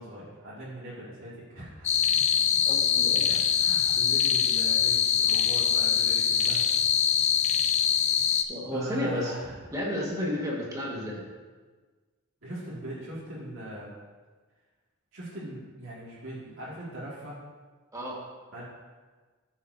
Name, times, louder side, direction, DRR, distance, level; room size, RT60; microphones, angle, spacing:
voice 1, 0.0-1.9 3.2-6.7 8.7-9.5 12.4-13.9 15.1-17.4 18.5-18.6, right 1 dB, 80° right, -10 dB, 2.2 m, -40 dB
sound 1, 1.8-8.4, left 8 dB, 35° left, 0.5 m, -24 dB
voice 2, 2.6-3.3 8.3-9.3 9.7-11.2 17.9-18.2, left 1 dB, 15° right, -3 dB, 1.6 m, -32 dB
14.0 x 7.2 x 2.7 m, 1.4 s
head